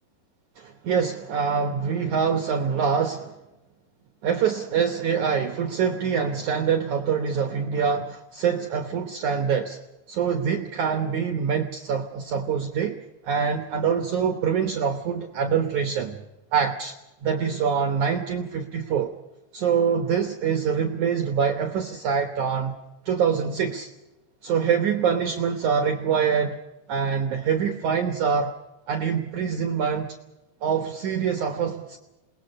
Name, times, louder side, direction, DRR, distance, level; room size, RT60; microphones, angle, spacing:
voice 1, 0.6-3.4 4.2-9.8 10.1-13.0 13.2-16.2 16.5-19.1 19.5-22.8 23.1-23.9 24.4-26.6 26.9-28.5 28.9-30.2 30.6-32.0, right 7 dB, 65° right, 6 dB, 2.0 m, -25 dB
28.5 x 20.5 x 5.5 m, 1.0 s
omnidirectional pair, 4.8 m